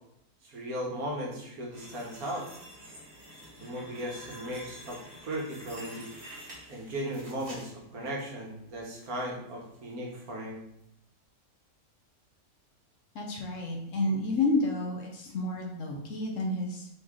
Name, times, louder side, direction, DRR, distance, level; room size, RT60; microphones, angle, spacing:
voice 1, 0.4-2.5 3.6-6.1 6.7-10.6, equal, 70° right, -2 dB, 1.5 m, -37 dB
sound 1, 1.7-8.2 8.6-9.2 9.6-9.8 10.3-10.4, equal, 40° right, 1.3 m, -48 dB
voice 2, 13.1-16.9, left 2 dB, 60° left, 1 dB, 1.0 m, -30 dB
4.1 x 3.0 x 3.6 m, 0.75 s
omnidirectional pair, 1.6 m